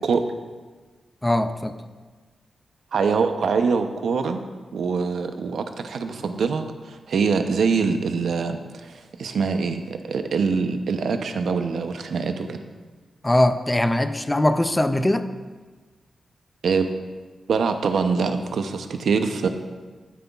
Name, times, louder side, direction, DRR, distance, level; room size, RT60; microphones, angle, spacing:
voice 1, 1.2-1.7 13.2-15.2, left 1 dB, 15° left, 10 dB, 0.4 m, -21 dB
voice 2, 2.9-4.4 4.7-12.6 16.6-16.9 17.5-19.5, right 5 dB, 75° right, 7 dB, 0.6 m, -24 dB
12.0 x 9.1 x 2.3 m, 1.3 s
wide cardioid pair, 120°, 0 cm